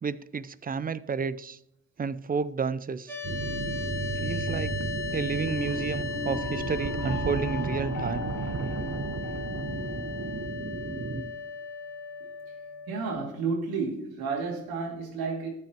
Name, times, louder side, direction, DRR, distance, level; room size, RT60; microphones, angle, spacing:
voice 1, 0.0-1.6 2.0-3.2 4.2-4.7 5.1-8.3, right 5 dB, 25° right, 17 dB, 0.5 m, -31 dB
sound 1, 3.1-13.1, left 4 dB, 5° left, 3.0 m, -36 dB
sound 2, 3.2-11.2, right 5 dB, 40° right, 1.2 m, -34 dB
sound 3, 5.4-10.5, left 4 dB, 50° left, 1.3 m, -39 dB
voice 2, 12.9-15.5, right 4 dB, 70° right, -1 dB, 2.5 m, -31 dB
14.0 x 6.2 x 3.0 m, 0.76 s
supercardioid pair, 65°, 39 cm